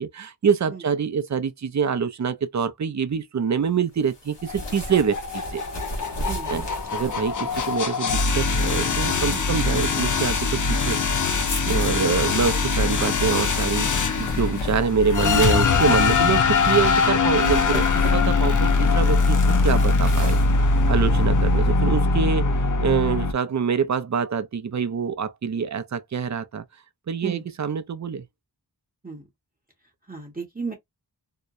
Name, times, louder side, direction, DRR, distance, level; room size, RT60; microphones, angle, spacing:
voice 1, 0.0-5.6 6.5-6.6 6.9-11.0 11.7-20.4 20.9-26.6 27.1-28.3, right 6 dB, 45° right, 0.4 m, -25 dB
sound 1, 4.0-16.7 17.2-21.5, left 1 dB, 80° left, 1.1 m, -37 dB
sound 2, 4.5-23.3, left 4 dB, 45° left, 0.5 m, -22 dB
voice 2, 6.3-6.6 9.3-9.4 11.7-11.8 27.2-27.4 29.0-29.3 30.1-30.7, right 4 dB, 20° right, 0.8 m, -35 dB
2.8 x 2.1 x 2.4 m
wide cardioid pair, 45°, 42 cm